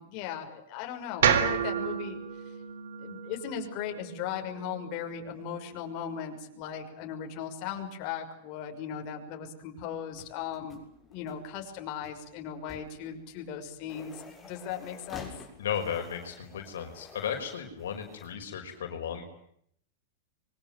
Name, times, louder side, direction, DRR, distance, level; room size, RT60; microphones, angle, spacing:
voice 1, 0.0-2.2 3.0-15.3, left 8 dB, 45° left, 3 dB, 6.0 m, -38 dB
sound 1, 1.2-5.4, right 8 dB, 80° right, 3.8 m, -30 dB
sound 2, 10.1-18.3, left 4 dB, 15° left, 6.9 m, -51 dB
voice 2, 15.6-19.2, left 8 dB, 85° left, 4 dB, 5.5 m, -35 dB
26.0 x 24.0 x 9.2 m, 0.70 s
supercardioid pair, 140°, 0 cm